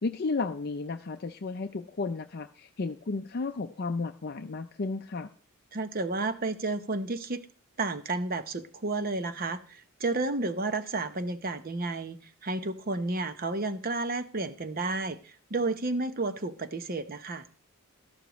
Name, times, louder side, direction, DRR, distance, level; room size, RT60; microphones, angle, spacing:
voice 1, 0.0-5.3, left 3 dB, 45° left, 7 dB, 0.5 m, -33 dB
voice 2, 5.7-7.4 7.8-17.5, right 3 dB, 40° right, 11 dB, 0.8 m, -31 dB
13.0 x 12.0 x 3.1 m, 0.39 s
head